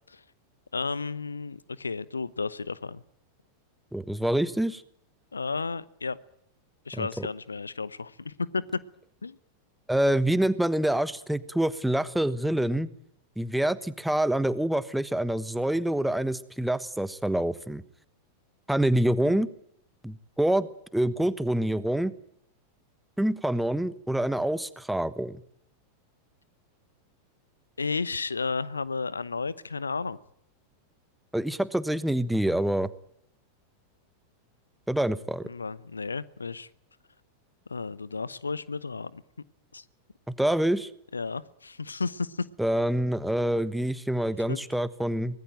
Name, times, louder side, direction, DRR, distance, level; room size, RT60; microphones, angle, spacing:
voice 1, 0.7-3.0 5.3-6.2 6.9-8.6 9.2-9.4 19.2-19.4 27.8-30.2 35.4-36.7 37.7-39.2 39.7-39.8 41.1-42.5 44.5-44.6, left 4 dB, 75° left, 20 dB, 0.9 m, -33 dB
voice 2, 3.9-4.8 6.9-7.3 9.9-12.9 13.4-17.8 18.7-19.5 20.0-22.1 23.2-25.4 31.3-32.9 34.9-35.5 40.3-40.9 42.6-45.4, right 1 dB, 5° right, 16 dB, 1.3 m, -26 dB
24.0 x 20.0 x 9.1 m, 0.71 s
figure-of-eight pair, 90°, 0 cm